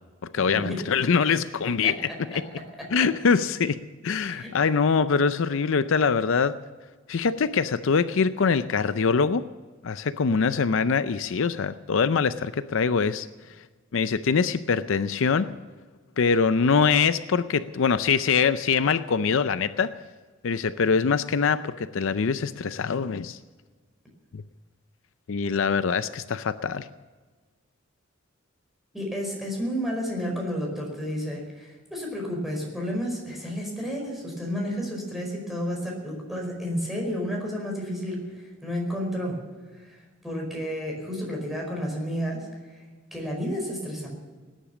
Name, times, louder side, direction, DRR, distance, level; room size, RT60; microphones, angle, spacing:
voice 1, 0.3-2.0 2.3-2.4 2.9-6.6 7.1-9.5 9.8-13.3 13.9-15.5 16.2-19.9 20.4-23.4 24.3-24.4 25.3-26.9, left 5 dB, 65° left, 13 dB, 0.5 m, -23 dB
voice 2, 28.9-39.4 39.7-42.8 43.1-44.1, equal, ahead, -1 dB, 5.0 m, -31 dB
18.5 x 10.0 x 7.2 m, 1.4 s
head